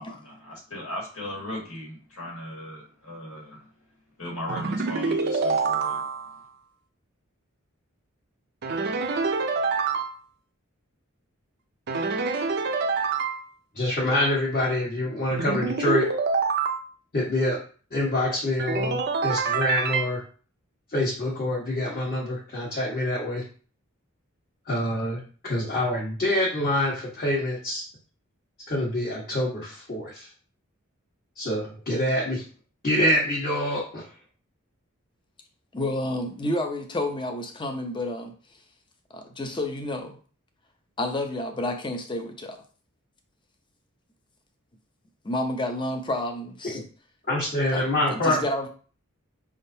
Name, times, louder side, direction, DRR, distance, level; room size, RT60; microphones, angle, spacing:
voice 1, 0.0-3.7 4.2-6.1, left 1 dB, 80° left, -2 dB, 1.8 m, -37 dB
sound 1, 4.5-6.4 8.6-10.2 11.9-13.4 15.3-16.8 18.6-20.1, right 4 dB, 50° right, 0.5 m, -26 dB
voice 2, 13.7-16.0 17.1-17.6 17.9-20.2 20.9-23.4 24.7-27.8 28.7-30.3 31.4-32.4 32.8-34.1 47.3-48.4, left 1 dB, 45° left, -6 dB, 1.4 m, -26 dB
voice 3, 35.7-38.3 39.1-40.2 41.0-42.6 45.2-46.8 47.7-47.8 48.1-48.7, left 1 dB, 25° left, 5 dB, 0.6 m, -30 dB
5.2 x 3.6 x 2.7 m, 0.40 s
head